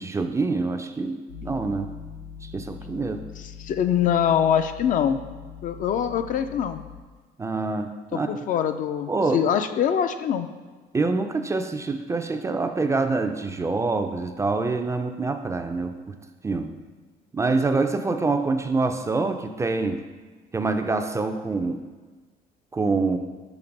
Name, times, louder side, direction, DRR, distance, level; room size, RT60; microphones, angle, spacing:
voice 1, 0.0-1.9 2.4-3.2 7.4-8.4 9.1-9.4 10.9-16.0 16.4-16.7 17.3-20.0 20.5-21.8 22.7-23.2, right 3 dB, 15° right, 7 dB, 0.3 m, -26 dB
sound 1, 1.3-7.0, left 7 dB, 80° left, 1.0 m, -42 dB
voice 2, 3.4-5.2 5.6-6.8 8.1-10.5, left 9 dB, 50° left, 9 dB, 0.4 m, -24 dB
6.0 x 3.3 x 5.1 m, 1.4 s
cardioid pair, 110°, 17 cm